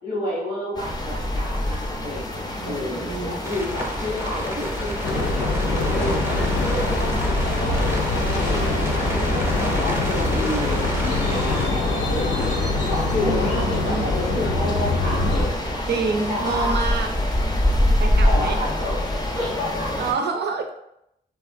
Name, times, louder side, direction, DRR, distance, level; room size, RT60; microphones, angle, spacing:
voice 1, 0.0-6.1 6.6-12.6 12.9-15.8 16.3-16.8 18.2-19.0 19.3-19.9, left 1 dB, 90° left, -9 dB, 1.1 m, -30 dB
sound 1, 0.8-20.1, left 1 dB, 20° left, 0.6 m, -27 dB
voice 2, 2.6-3.4 13.2-14.1 15.9-17.1 18.0-18.6 20.0-20.7, right 4 dB, 65° right, 4 dB, 0.5 m, -27 dB
sound 2, 3.4-11.7, equal, 15° right, 0.7 m, -31 dB
sound 3, 5.0-15.5, left 2 dB, 75° left, 0.6 m, -24 dB
3.0 x 2.3 x 2.5 m, 0.79 s
supercardioid pair, 40°, 19 cm